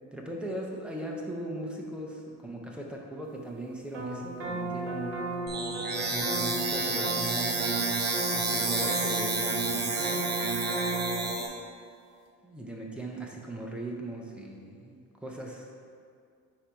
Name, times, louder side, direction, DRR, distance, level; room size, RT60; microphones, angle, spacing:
voice 1, 0.1-5.2 6.1-7.6 8.3-10.2 12.4-15.9, right 1 dB, 5° right, -1 dB, 0.3 m, -39 dB
sound 1, 3.9-11.3, right 3 dB, 70° right, 1.1 m, -34 dB
sound 2, 5.5-11.5, right 3 dB, 35° right, 0.7 m, -30 dB
4.5 x 4.3 x 5.0 m, 2.3 s
cardioid pair, 175°, 31 cm